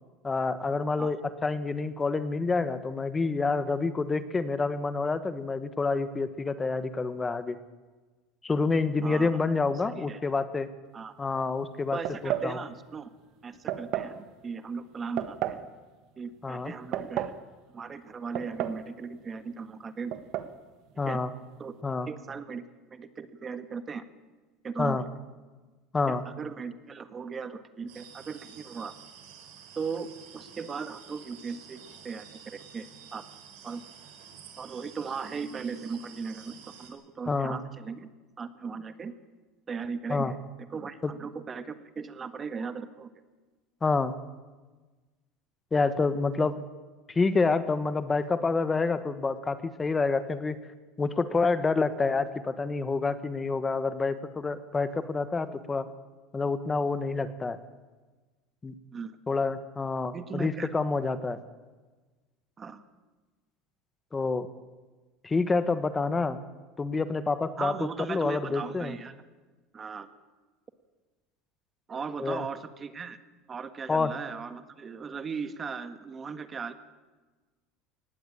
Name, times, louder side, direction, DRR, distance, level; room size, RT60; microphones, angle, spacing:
voice 1, 0.2-7.6 8.4-10.7 11.2-12.0 12.2-12.6 16.4-16.7 21.0-21.3 21.8-22.1 24.8-25.0 25.9-26.2 37.3-37.6 40.1-40.3 41.0-41.1 43.8-44.1 45.7-46.6 47.1-50.6 51.0-55.9 56.3-57.6 58.6-58.7 59.3-61.4 64.1-64.5 65.2-66.4 66.8-67.7 68.1-68.9 72.2-72.4 73.9-74.1, left 4 dB, 20° left, 12 dB, 1.2 m, -28 dB
voice 2, 9.0-9.4 9.9-10.2 10.9-11.3 11.9-13.1 13.4-15.6 16.2-17.3 17.7-20.2 20.9-21.2 21.6-21.7 22.1-22.6 22.9-24.1 24.6-25.0 26.1-28.9 29.8-33.2 33.6-33.8 34.6-38.1 38.4-39.1 39.7-40.4 40.7-43.1 58.9-59.2 60.1-60.7 62.6-62.8 67.6-69.1 69.7-70.1 71.9-73.2 73.5-76.7, right 5 dB, 25° right, 11 dB, 1.4 m, -38 dB
sound 1, 12.1-12.5 13.7-14.2 15.2-15.7 16.7-17.4 18.4-18.9 19.1-19.2 20.1-20.5, right 12 dB, 60° right, 1.5 m, -32 dB
sound 2, 27.9-36.9, right 7 dB, 80° right, 4.4 m, -50 dB
19.0 x 16.0 x 8.8 m, 1.3 s
supercardioid pair, 110°, 0 cm